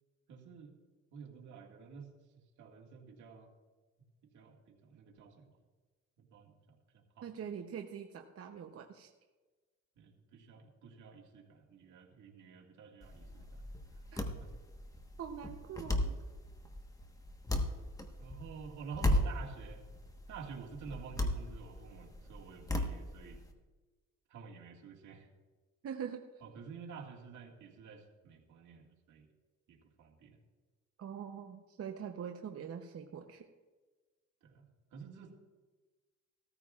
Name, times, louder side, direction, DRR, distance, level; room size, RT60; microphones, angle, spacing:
voice 1, 0.3-0.7 1.1-2.1 2.6-3.5 4.3-5.5 6.2-6.5 6.9-7.3 10.0-13.6 14.2-14.5 18.2-19.8 20.3-23.4 24.3-25.3 26.4-29.3 29.7-30.4 34.4-35.3, right 6 dB, 75° right, 0 dB, 2.0 m, -50 dB
voice 2, 7.2-9.1 14.1-14.2 15.2-16.2 25.8-26.2 31.0-33.5, right 7 dB, 50° right, 4 dB, 0.8 m, -43 dB
sound 1, 13.0-23.5, left 1 dB, 10° left, 1.2 m, -37 dB
15.5 x 14.0 x 2.4 m, 1.3 s
cardioid pair, 90°, 30 cm